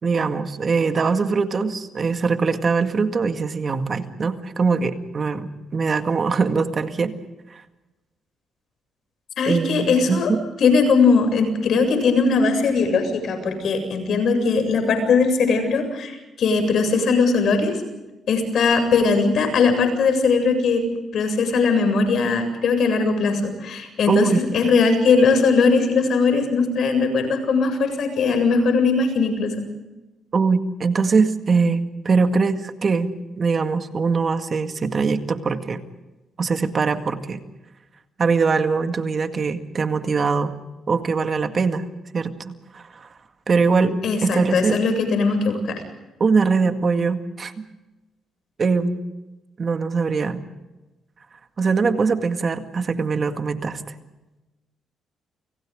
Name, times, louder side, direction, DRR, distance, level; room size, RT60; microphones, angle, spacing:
voice 1, 0.0-7.1 7.5-7.6 9.5-10.4 24.1-24.4 30.3-33.1 33.4-35.8 36.4-37.4 38.2-40.5 40.9-41.8 42.1-43.1 43.5-44.8 46.2-47.7 48.6-49.0 49.6-50.4 51.6-53.8, right 4 dB, 40° right, 7 dB, 2.0 m, -22 dB
voice 2, 9.4-10.3 10.6-17.8 18.3-20.8 21.1-29.6 44.0-45.8, left 4 dB, 65° left, 7 dB, 7.5 m, -19 dB
30.0 x 29.5 x 3.8 m, 1.0 s
cardioid pair, 90°, 0 cm